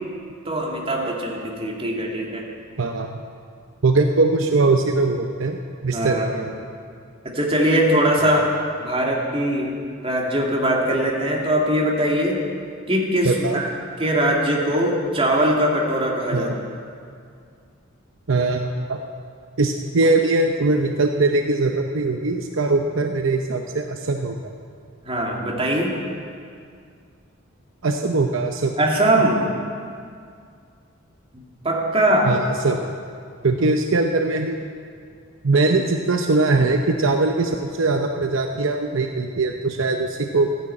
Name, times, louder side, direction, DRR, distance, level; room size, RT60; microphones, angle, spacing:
voice 1, 0.5-2.4 5.9-6.3 7.2-8.5 8.8-9.7 10.0-12.4 12.9-13.7 14.0-16.5 25.0-25.9 28.8-29.4 31.3-32.4, right 1 dB, 30° right, -2 dB, 2.4 m, -21 dB
voice 2, 2.8-3.1 3.8-6.5 13.2-13.6 16.3-16.5 18.3-19.0 19.6-24.5 27.8-28.8 32.2-32.8 33.4-34.6 35.4-40.5, right 3 dB, 65° right, 4 dB, 0.8 m, -21 dB
14.5 x 10.5 x 8.5 m, 2.3 s
head